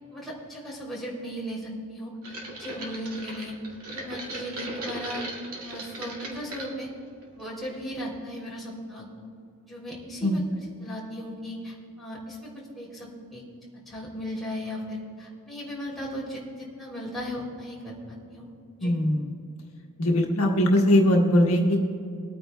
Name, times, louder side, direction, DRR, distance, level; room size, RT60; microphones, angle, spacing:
voice 1, 0.1-3.5 3.9-5.2 5.6-6.9 7.3-9.0 9.7-12.5 12.7-13.4 13.9-18.5 18.8-18.9, equal, ahead, -6 dB, 3.1 m, -37 dB
sound 1, 2.2-6.7 7.2-7.7 8.0-8.1, right 1 dB, 75° right, 2.3 m, -37 dB
voice 2, 18.8-19.3 20.0-21.8, left 1 dB, 70° left, -1 dB, 1.4 m, -21 dB
24.0 x 9.3 x 2.3 m, 2.5 s
head